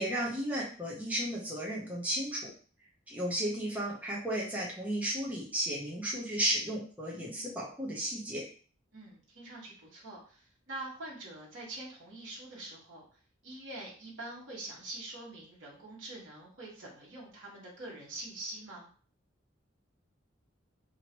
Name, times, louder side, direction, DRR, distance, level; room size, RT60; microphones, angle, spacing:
voice 1, 0.0-2.5 3.1-8.4, right 1 dB, 10° right, -4 dB, 0.8 m, -34 dB
voice 2, 8.9-13.0 13.4-18.9, right 2 dB, 70° right, -5 dB, 1.3 m, -45 dB
3.0 x 2.8 x 2.9 m, 0.41 s
head